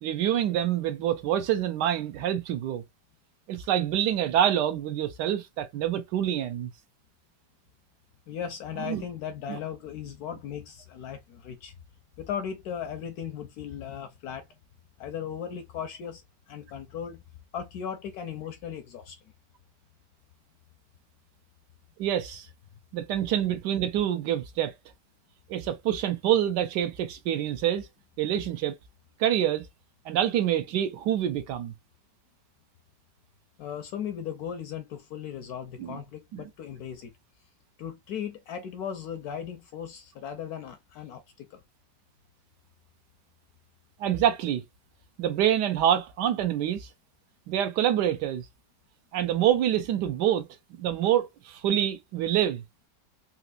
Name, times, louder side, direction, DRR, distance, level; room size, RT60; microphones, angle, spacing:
voice 1, 0.0-2.8 3.5-6.7 8.8-9.0 9.5-9.6 22.0-22.5 22.9-24.7 25.5-27.9 28.2-28.7 29.2-29.7 30.0-31.7 35.8-36.0 36.3-36.4 44.0-44.6 45.2-46.9 47.5-48.5 49.1-52.6, right 11 dB, 75° right, 1.1 m, -26 dB
voice 2, 8.3-11.8 12.2-14.5 15.0-16.2 16.5-17.2 17.5-19.2 33.6-37.1 37.8-41.6, left 8 dB, 70° left, 1.0 m, -37 dB
4.2 x 2.5 x 2.3 m
omnidirectional pair, 2.0 m